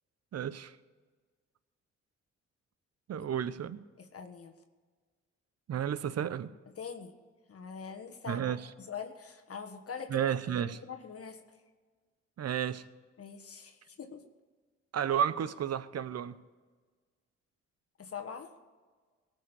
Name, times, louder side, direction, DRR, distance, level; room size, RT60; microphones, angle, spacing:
voice 1, 0.3-0.8 3.1-3.8 5.7-6.5 8.3-8.7 10.1-10.8 12.4-12.8 14.9-16.4, right 9 dB, 60° right, 0.8 m, -32 dB
voice 2, 4.0-4.5 6.8-7.2 7.5-8.5 8.9-10.3 10.6-11.4 13.2-14.2 18.0-18.5, left 6 dB, 50° left, 1.5 m, -43 dB
18.5 x 6.4 x 8.2 m
cardioid pair, 65°, 29 cm